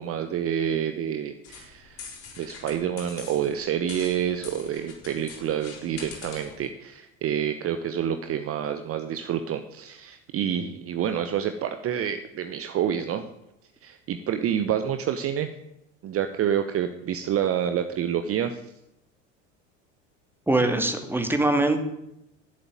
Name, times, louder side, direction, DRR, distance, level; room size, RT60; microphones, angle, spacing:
voice 1, 0.0-13.3 13.8-15.5 16.0-18.6, right 9 dB, 40° right, 8 dB, 1.0 m, -28 dB
sound 1, 1.4-6.7, left 5 dB, 45° left, 4.9 m, -44 dB
voice 2, 20.5-21.8, right 2 dB, 5° right, 6 dB, 2.2 m, -22 dB
11.0 x 8.0 x 8.9 m, 0.83 s
hypercardioid pair, 75°, 37 cm